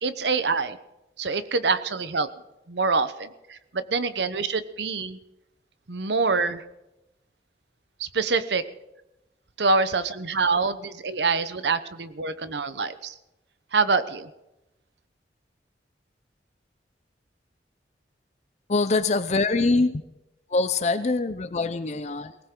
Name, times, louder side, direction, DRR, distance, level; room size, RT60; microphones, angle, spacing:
voice 1, 0.0-0.8 1.2-2.3 2.7-5.2 5.9-6.6 8.0-8.6 9.6-13.1 13.7-14.3, right 4 dB, 75° right, 12 dB, 0.9 m, -25 dB
voice 2, 18.7-20.0 20.5-22.4, left 3 dB, 40° left, 10 dB, 0.6 m, -24 dB
19.0 x 18.5 x 3.8 m, 0.93 s
head